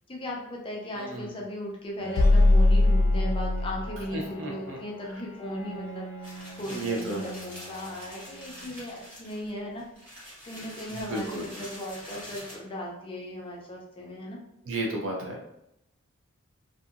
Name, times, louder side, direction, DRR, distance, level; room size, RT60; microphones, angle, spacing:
voice 1, 0.1-9.9 10.4-14.4, left 1 dB, 25° left, -2 dB, 0.4 m, -37 dB
voice 2, 0.9-1.3 4.1-4.8 6.6-7.3 10.9-11.5 14.6-15.4, right 2 dB, 60° right, 0 dB, 0.6 m, -33 dB
Bowed string instrument, 2.0-9.1, right 2 dB, 60° left, 0.8 m, -42 dB
sound 1, 2.2-4.0, left 2 dB, 85° left, 0.4 m, -20 dB
sound 2, 6.2-12.6, equal, 10° right, 1.1 m, -45 dB
2.7 x 2.6 x 2.5 m, 0.84 s
head